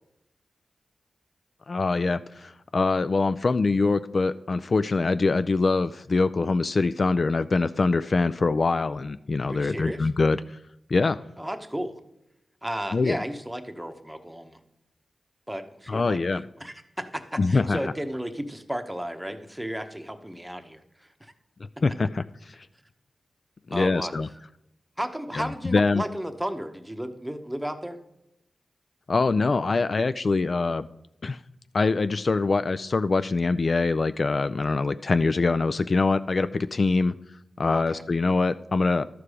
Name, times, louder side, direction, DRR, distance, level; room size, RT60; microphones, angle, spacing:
voice 1, 1.7-10.6 10.9-11.2 12.9-13.2 15.9-16.4 17.4-17.8 21.8-22.7 23.7-24.3 25.3-26.0 29.1-30.9 31.2-31.4 31.7-37.1 37.6-39.0, left 3 dB, 50° left, 13 dB, 0.3 m, -24 dB
voice 2, 9.5-10.1 11.4-12.0 12.6-14.6 15.5-21.3 23.7-24.1 25.0-28.0 37.7-38.0, equal, 5° right, 7 dB, 1.0 m, -34 dB
12.5 x 4.8 x 4.9 m, 0.84 s
cardioid pair, 65°, 0 cm